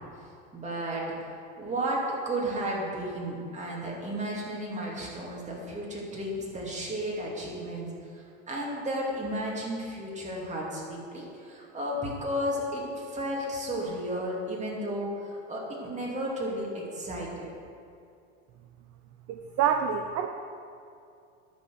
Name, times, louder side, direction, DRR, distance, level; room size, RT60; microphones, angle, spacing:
voice 1, 0.5-1.3 1.6-12.8 13.1-17.5, equal, 20° right, -3 dB, 2.5 m, -33 dB
voice 2, 19.3-20.3, right 8 dB, 45° right, 6 dB, 0.7 m, -27 dB
11.0 x 4.4 x 7.7 m, 2.4 s
supercardioid pair, 115°, 36 cm